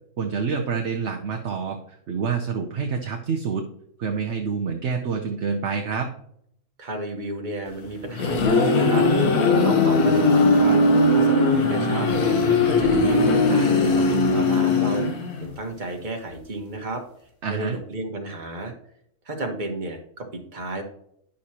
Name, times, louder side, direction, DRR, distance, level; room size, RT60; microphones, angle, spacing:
voice 1, 0.2-3.7 4.0-6.1 17.4-17.8, right 5 dB, 55° right, 3 dB, 1.0 m, -27 dB
voice 2, 6.8-12.1 12.6-15.0 15.4-17.0 17.5-18.7 19.2-20.8, right 2 dB, 35° right, 2 dB, 1.4 m, -32 dB
sound 1, 7.8-15.6, left 2 dB, 85° left, 1.6 m, -19 dB
10.0 x 6.3 x 2.8 m, 0.70 s
omnidirectional pair, 1.5 m